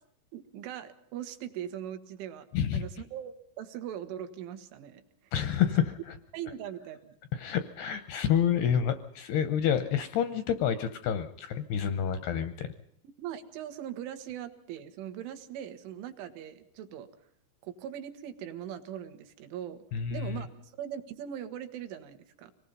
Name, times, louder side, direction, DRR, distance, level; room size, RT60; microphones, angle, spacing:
voice 1, 0.3-5.3 6.3-7.2 13.0-17.1 17.6-19.8 20.1-22.5, right 10 dB, 75° right, 9 dB, 3.7 m, -41 dB
voice 2, 2.5-2.9 5.3-6.0 7.3-12.7 19.9-20.4, left 9 dB, 80° left, 11 dB, 2.4 m, -28 dB
25.5 x 19.5 x 5.3 m, 0.68 s
omnidirectional pair, 5.7 m